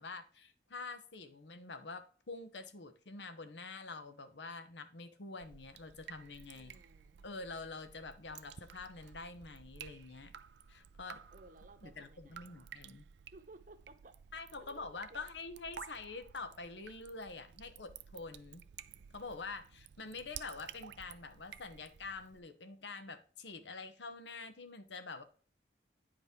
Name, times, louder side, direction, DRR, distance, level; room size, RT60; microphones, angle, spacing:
voice 1, 0.0-6.8 7.2-10.3 10.7-11.2 11.8-13.1 14.3-18.7 19.1-25.2, left 3 dB, 90° left, 0.9 m, -46 dB
Drip, 5.4-22.4, right 8 dB, 85° right, 0.4 m, -54 dB
voice 2, 6.5-7.2 11.3-12.7 13.3-14.2 14.6-15.3, right 2 dB, 50° right, 0.9 m, -58 dB
9.5 x 4.9 x 3.6 m
head